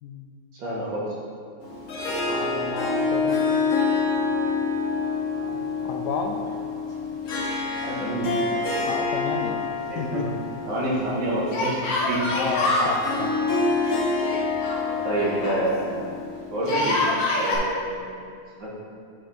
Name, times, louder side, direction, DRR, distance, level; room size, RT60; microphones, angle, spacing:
voice 1, 0.5-1.1 7.8-8.4 9.9-10.3 10.7-11.8 12.1-12.2 15.0-16.0 16.5-17.0 17.4-17.9 18.6-18.7, right 1 dB, 75° right, -6 dB, 2.4 m, -27 dB
Harp, 1.6-16.9, left 4 dB, 50° left, 1.3 m, -27 dB
voice 2, 2.3-3.5 5.5-5.6 5.8-6.4 8.9-9.6 9.9-10.3 12.3-13.3, left 5 dB, 70° left, 3 dB, 1.1 m, -31 dB
Yell, 8.3-9.1 9.4-9.5 11.5-12.9 14.2-15.6 16.6-17.6, left 2 dB, 85° left, 2.1 m, -26 dB
7.3 x 5.8 x 4.3 m, 2.3 s
omnidirectional pair, 2.0 m